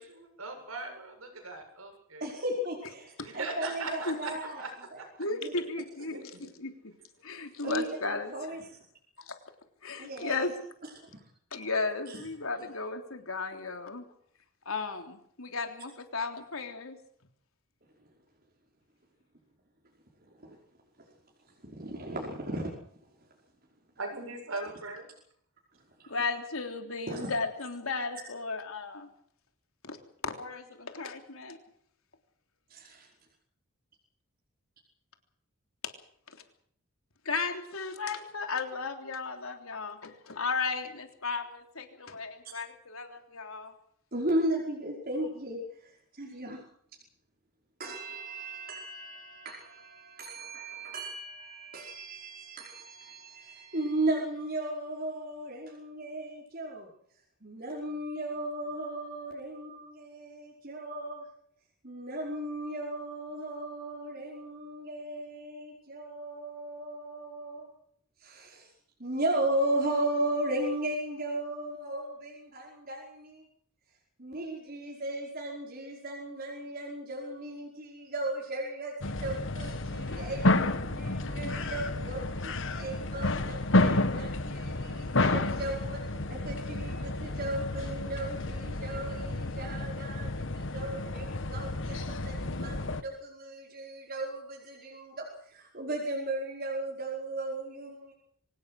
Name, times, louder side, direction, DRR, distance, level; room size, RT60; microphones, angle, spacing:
voice 1, 0.0-2.2 3.2-5.1 6.1-6.5 24.0-25.1, right 3 dB, 80° right, 4 dB, 7.6 m, -40 dB
voice 2, 2.2-4.6 4.9-5.0 5.4-5.6 6.1-6.2 7.6-8.8 10.0-10.4 10.9-11.2 11.6-11.7 12.1-12.2 20.4-20.6 21.6-22.7 26.0-26.2 27.1-27.3 32.7-33.1 42.4-42.5 44.1-46.6 47.8-56.9 57.4-61.3 61.8-67.7 68.2-68.7 69.0-73.4 74.2-86.0 86.3-98.1, right 1 dB, 45° right, -2 dB, 5.3 m, -36 dB
voice 3, 5.2-6.9 7.2-8.3 9.2-9.3 9.8-10.5 11.5-14.0 14.6-17.0 26.1-29.1 29.8-30.0 30.2-31.6 35.8-35.9 37.2-43.7, left 4 dB, 80° left, 5 dB, 3.5 m, -35 dB
sound 1, 79.0-93.0, left 2 dB, 60° left, 1.5 m, -31 dB
24.5 x 18.5 x 6.5 m, 0.65 s
head